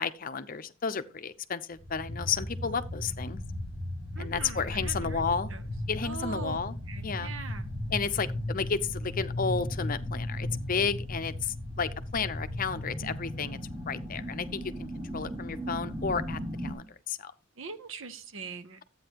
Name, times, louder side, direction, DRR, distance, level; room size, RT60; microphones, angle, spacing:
voice 1, 0.0-3.4 4.2-5.5 5.9-6.8 7.0-7.3 7.9-13.6 13.9-17.3, left 5 dB, 40° left, 0.7 m, -32 dB
sound 1, 1.7-16.7, left 1 dB, 25° right, 2.9 m, -36 dB
voice 2, 4.2-5.2 5.5-5.7 6.0-6.6 6.9-7.7 17.6-18.8, right 4 dB, 70° right, 0.9 m, -41 dB
12.0 x 8.6 x 2.9 m
head